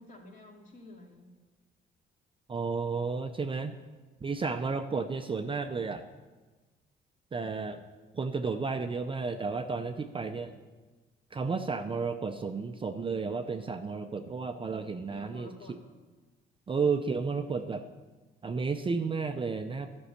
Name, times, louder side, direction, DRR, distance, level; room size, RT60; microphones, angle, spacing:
voice 1, 0.0-1.3 15.1-15.8, left 2 dB, 40° left, 0 dB, 2.2 m, -50 dB
voice 2, 2.5-3.8 4.2-6.0 7.3-7.8 8.1-10.6 11.3-15.5 16.7-17.9 18.4-19.9, right 4 dB, 25° right, 7 dB, 0.5 m, -32 dB
11.5 x 5.4 x 6.6 m, 1.3 s
cardioid pair, 90°, 21 cm